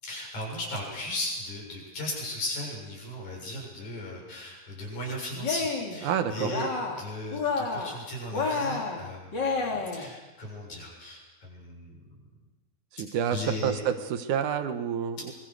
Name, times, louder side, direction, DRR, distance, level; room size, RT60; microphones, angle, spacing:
voice 1, 0.0-6.7 7.0-11.9 13.3-13.8 15.2-15.3, left 1 dB, 55° left, -1 dB, 8.6 m, -36 dB
Cheering, 5.3-6.0 6.4-7.1 7.3-8.0 8.3-10.1, left 4 dB, 30° left, 3.1 m, -30 dB
voice 2, 6.0-6.5 12.9-15.3, right 8 dB, 65° right, 8 dB, 2.5 m, -29 dB
25.5 x 23.0 x 6.5 m, 1.1 s
omnidirectional pair, 4.2 m